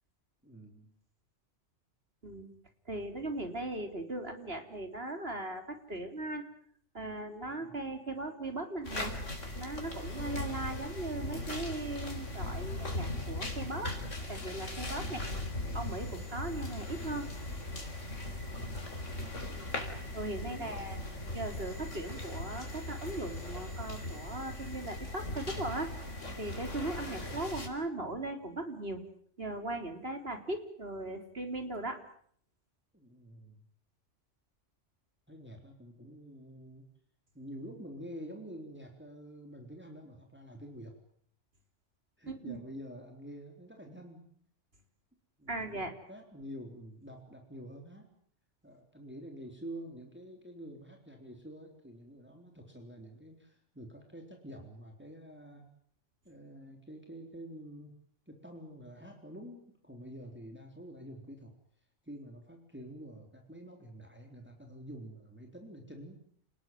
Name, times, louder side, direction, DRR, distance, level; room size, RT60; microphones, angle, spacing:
voice 1, 0.4-0.9 7.5-7.8 15.0-15.3 18.5-18.9 20.3-21.4 27.2-27.6 32.9-33.6 35.3-36.9 37.3-40.9 42.2-44.3 45.4-48.1 48.6-55.7 56.2-57.9 58.3-61.5 62.0-66.3, equal, 10° right, 2 dB, 3.8 m, -48 dB
voice 2, 2.9-6.4 6.9-9.1 9.6-14.0 14.3-15.2 15.7-17.3 19.5-19.7 20.1-21.0 21.3-25.9 26.4-29.0 29.4-32.0 42.3-42.6 45.5-45.9, right 2 dB, 55° right, 6 dB, 4.1 m, -38 dB
sound 1, 8.8-27.7, left 1 dB, 85° left, 4.6 m, -39 dB
29.0 x 19.5 x 9.4 m, 0.62 s
omnidirectional pair, 1.2 m